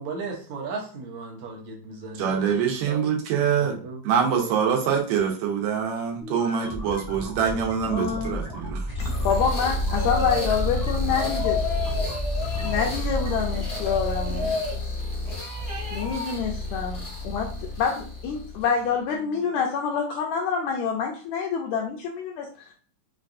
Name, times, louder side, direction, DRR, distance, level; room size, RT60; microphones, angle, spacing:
voice 1, 0.0-2.5 2.9-3.0 3.4-4.5, right 4 dB, 70° right, -1 dB, 1.9 m, -36 dB
voice 2, 2.2-3.8 4.0-8.9, right 7 dB, 90° right, 1 dB, 2.5 m, -24 dB
sound 1, 6.2-13.3, equal, 5° right, 0.6 m, -33 dB
voice 3, 7.9-8.4 9.2-11.7 12.6-14.7 15.9-22.7, left 6 dB, 80° left, 1 dB, 1.7 m, -27 dB
sound 2, 8.9-18.9, left 2 dB, 50° left, 0.8 m, -30 dB
sound 3, 9.9-10.6 11.1-12.9 13.5-14.8 15.2-16.4, left 4 dB, 45° right, 0.7 m, -32 dB
5.7 x 2.3 x 2.5 m, 0.42 s
omnidirectional pair, 3.7 m